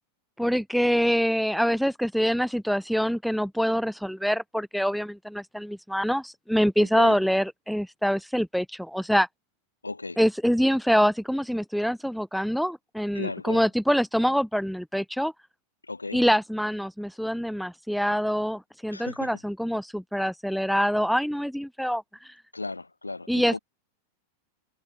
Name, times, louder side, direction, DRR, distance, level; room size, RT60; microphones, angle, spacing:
voice 1, 0.4-9.3 10.2-15.3 16.1-22.0 23.3-23.6, equal, ahead, 3.5 m, -25 dB
voice 2, 6.8-7.2 9.8-10.2 13.1-13.6 15.8-16.2 18.9-19.3 22.5-23.6, left 3 dB, 80° left, 4.8 m, -36 dB
figure-of-eight pair, 90°, 0 cm